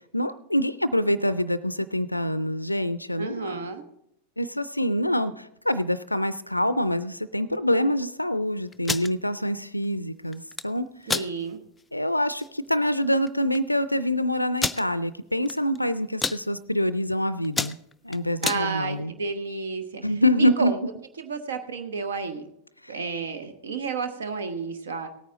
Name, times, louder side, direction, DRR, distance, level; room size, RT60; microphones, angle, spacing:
voice 1, 0.1-3.6 4.4-10.9 11.9-17.8 18.0-19.1 20.0-20.7 22.8-22.9, equal, 85° left, 16 dB, 0.4 m, -25 dB
voice 2, 3.2-3.8 11.1-11.6 18.4-20.0 20.3-20.8 21.2-22.5 22.9-25.1, right 4 dB, 65° right, 8 dB, 1.0 m, -31 dB
sound 1, 8.7-9.1 10.3-10.7 11.1-11.3 11.8-11.9 12.2-12.5 13.3-13.4 13.5-13.6 14.6-14.8 15.5-15.8 16.0-16.4 17.0-17.1 17.4-18.6, left 3 dB, 10° left, 0.4 m, -28 dB
17.0 x 9.3 x 3.7 m, 0.77 s
figure-of-eight pair, 90°, 0 cm